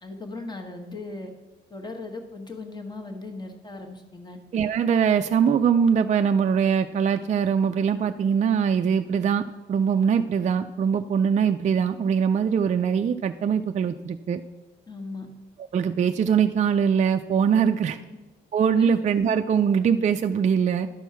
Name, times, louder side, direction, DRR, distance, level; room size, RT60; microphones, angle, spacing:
voice 1, 0.0-1.3 1.7-4.4 14.9-15.3 17.8-18.1 18.8-18.9, left 3 dB, 20° left, 4 dB, 1.4 m, -38 dB
voice 2, 4.5-14.4 15.7-18.0 18.5-20.9, right 7 dB, 35° right, 7 dB, 0.4 m, -22 dB
11.5 x 4.5 x 5.7 m, 1.1 s
cardioid pair, 90°, 20 cm